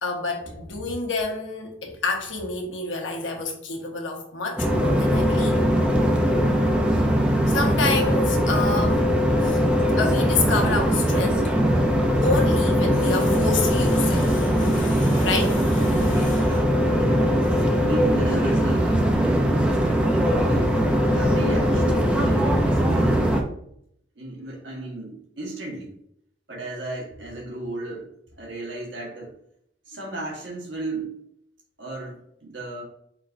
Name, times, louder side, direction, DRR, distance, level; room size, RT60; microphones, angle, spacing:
voice 1, 0.0-5.6 7.5-9.1 9.4-9.6 10.0-11.6 12.2-16.5, left 3 dB, 85° left, 1.1 m, -28 dB
sound 1, 4.6-23.4, equal, 5° right, 0.5 m, -21 dB
voice 2, 16.3-17.4 17.8-20.7 21.1-23.3 24.1-25.9 26.5-28.1 28.4-29.3 29.9-31.2 31.8-32.8, right 2 dB, 70° right, 1.5 m, -35 dB
4.6 x 3.8 x 2.6 m
head